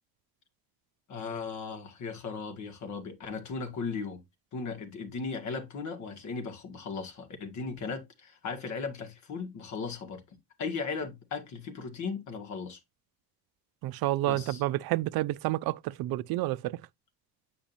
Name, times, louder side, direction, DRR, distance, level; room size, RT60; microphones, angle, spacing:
voice 1, 1.1-4.2 4.5-12.8 14.3-14.6, left 4 dB, 45° left, 1.8 m, -37 dB
voice 2, 13.8-16.8, right 17 dB, 65° right, 0.5 m, -29 dB
8.7 x 5.1 x 2.6 m
cardioid pair, 170°, 39 cm